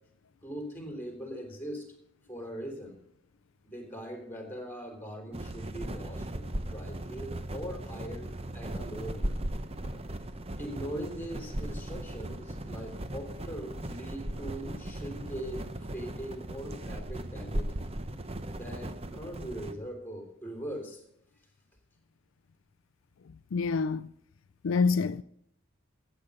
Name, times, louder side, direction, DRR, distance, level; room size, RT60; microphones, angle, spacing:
voice 1, 0.4-1.9 2.3-3.0 3.6-9.3 10.6-17.7 18.5-21.0, equal, 10° left, 3.3 m, -41 dB
sound 1, 5.3-19.7, right 1 dB, 30° right, 0.8 m, -37 dB
voice 2, 23.5-24.1 24.6-25.2, left 4 dB, 70° left, 0.4 m, -26 dB
15.5 x 8.2 x 5.4 m
head